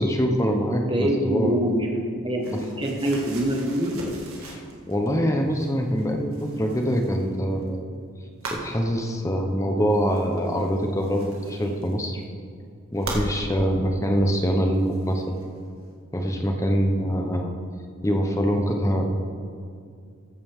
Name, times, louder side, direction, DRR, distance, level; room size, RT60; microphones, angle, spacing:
voice 1, 0.0-1.6 4.4-7.8 8.5-12.2 12.9-15.4 16.1-17.5 18.0-19.1, equal, 15° left, 3 dB, 0.8 m, -24 dB
voice 2, 0.7-3.9, right 1 dB, 20° right, 1 dB, 1.2 m, -25 dB
sound 1, 2.4-5.2 5.5-7.7 8.4-8.7 9.9-12.2 12.9-13.3 14.3-14.4 14.7-15.6, right 2 dB, 80° right, 2.0 m, -39 dB
14.5 x 8.8 x 3.6 m, 2.3 s
head